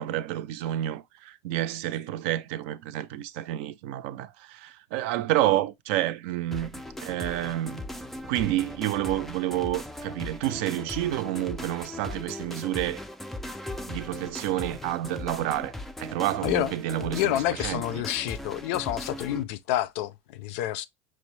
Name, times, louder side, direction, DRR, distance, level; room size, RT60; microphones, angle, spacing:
voice 1, 0.0-7.8 8.2-13.0 13.9-15.7 16.0-18.0, right 14 dB, 65° right, 0.4 m, -29 dB
sound 1, 6.5-19.4, left 1 dB, 5° left, 0.3 m, -38 dB
voice 2, 17.0-20.9, left 13 dB, 70° left, 0.4 m, -28 dB
6.0 x 2.1 x 3.1 m
supercardioid pair, 145°, 7 cm